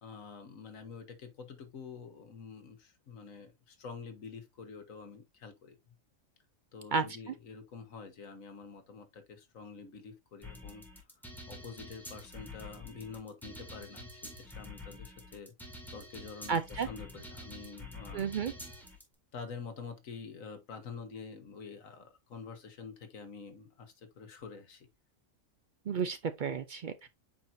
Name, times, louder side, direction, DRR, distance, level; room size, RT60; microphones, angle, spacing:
voice 1, 0.0-5.9 6.7-10.9 11.5-15.5 15.9-18.3 19.3-24.9, left 5 dB, 85° left, 1.7 m, -47 dB
sound 1, 10.4-19.0, left 2 dB, ahead, 2.1 m, -47 dB
voice 2, 16.5-16.9 18.1-18.5 25.9-27.1, right 5 dB, 65° right, 0.4 m, -32 dB
8.2 x 4.5 x 2.6 m
omnidirectional pair, 1.3 m